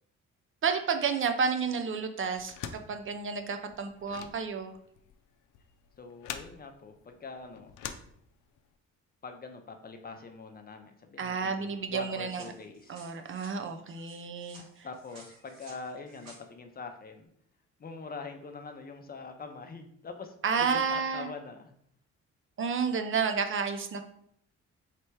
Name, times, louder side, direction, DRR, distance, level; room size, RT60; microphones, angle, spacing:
voice 1, 0.6-2.6 2.9-4.8 11.2-12.4 12.9-14.9 20.4-21.3 22.6-24.0, right 5 dB, 45° right, 7 dB, 0.5 m, -31 dB
sound 1, 2.4-8.7, left 9 dB, 90° left, 0.5 m, -45 dB
voice 2, 6.0-7.8 9.2-13.1 14.8-17.3 17.8-21.7, left 4 dB, 30° left, 6 dB, 0.6 m, -44 dB
sound 2, 12.3-16.4, right 2 dB, 60° right, 1.6 m, -55 dB
3.3 x 3.0 x 4.6 m, 0.67 s
cardioid pair, 90°, 30 cm